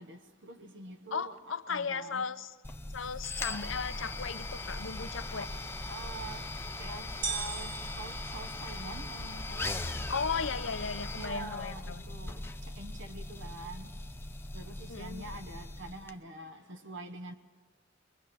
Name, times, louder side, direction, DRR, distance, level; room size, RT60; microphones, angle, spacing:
voice 1, 0.0-1.4 1.7-2.3 5.3-5.5 5.9-9.7 11.2-13.9 14.5-17.3, right 2 dB, 60° right, 1.2 m, -45 dB
voice 2, 1.1-2.5 2.9-5.5 10.1-12.2 14.9-15.4, left 5 dB, 65° left, 0.8 m, -36 dB
sound 1, 2.6-16.1, left 2 dB, 10° left, 0.7 m, -39 dB
sound 2, 7.2-9.2, right 5 dB, 45° right, 1.4 m, -39 dB
22.5 x 22.5 x 6.2 m
head